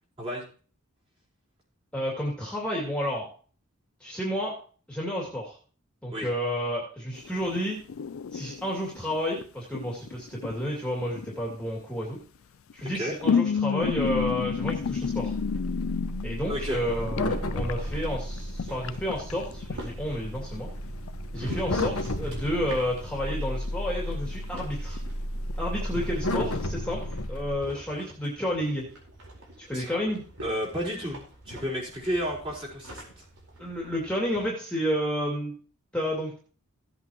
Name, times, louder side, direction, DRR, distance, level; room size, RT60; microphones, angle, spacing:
voice 1, 1.9-3.3 4.0-4.5 4.9-5.6 6.0-7.8 8.3-12.2 12.7-15.3 16.2-20.7 21.3-25.0 25.6-27.0 27.3-28.8 29.7-30.2 33.6-35.5 35.9-36.4, equal, 5° left, -3 dB, 2.5 m, -31 dB
sound 1, 7.2-9.4 9.7-11.7 12.7-17.2 17.5-19.8 20.9-21.1 21.4-21.5 21.8-22.3 22.7-22.8 23.1-23.7 24.1-24.6 25.0-25.1 25.5-25.6 25.8-26.6, left 6 dB, 65° left, 0.4 m, -31 dB
sound 2, 13.8-27.6, left 1 dB, 85° left, 1.3 m, -33 dB
voice 2, 16.5-16.8 21.4-21.5 29.7-30.0 30.4-33.2, equal, 25° right, -4 dB, 4.6 m, -32 dB
sound 3, 16.5-34.5, right 1 dB, 80° right, 4.4 m, -46 dB
16.0 x 8.2 x 3.0 m, 0.40 s
head